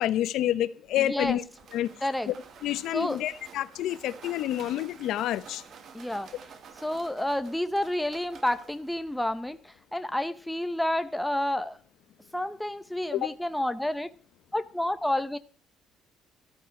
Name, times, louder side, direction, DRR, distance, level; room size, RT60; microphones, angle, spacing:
voice 1, 0.0-1.4 1.7-1.9 2.3-2.4 2.6-5.6 13.1-13.3, left 13 dB, 70° left, 0.9 m, -28 dB
sound 1, 0.8-9.6, right 6 dB, 45° right, 1.7 m, -51 dB
voice 2, 1.0-1.4 2.0-2.3 2.9-3.2 5.9-6.3 6.8-11.8 12.3-14.1 14.5-15.4, left 1 dB, 5° left, 0.8 m, -30 dB
14.0 x 14.0 x 4.5 m
cardioid pair, 150°, 0 cm